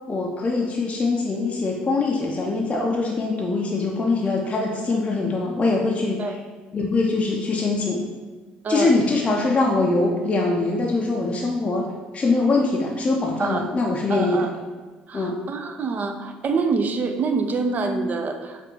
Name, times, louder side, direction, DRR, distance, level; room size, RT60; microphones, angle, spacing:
voice 1, 0.1-6.2 6.7-8.0 8.7-14.5 15.1-15.4, left 3 dB, 30° left, -1 dB, 0.5 m, -23 dB
voice 2, 14.1-14.5 15.1-18.6, right 4 dB, 45° right, 6 dB, 0.4 m, -26 dB
4.5 x 2.4 x 3.1 m, 1.4 s
hypercardioid pair, 65°, 4 cm